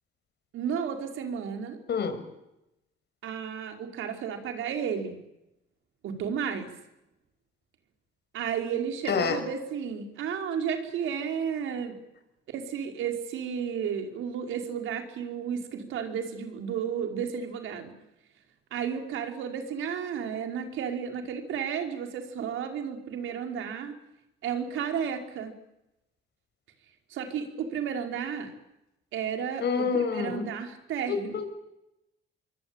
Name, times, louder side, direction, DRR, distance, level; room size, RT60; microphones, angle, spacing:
voice 1, 0.5-1.8 3.2-5.1 6.0-6.7 8.3-12.0 12.5-17.9 18.7-23.9 24.4-25.5 27.1-28.5 29.1-31.4, right 7 dB, 85° right, 4 dB, 5.0 m, -32 dB
voice 2, 1.9-2.2 9.1-9.4 29.6-30.5 31.1-31.5, left 6 dB, 60° left, 9 dB, 6.0 m, -27 dB
26.5 x 23.0 x 9.0 m, 0.89 s
cardioid pair, 90°, 20 cm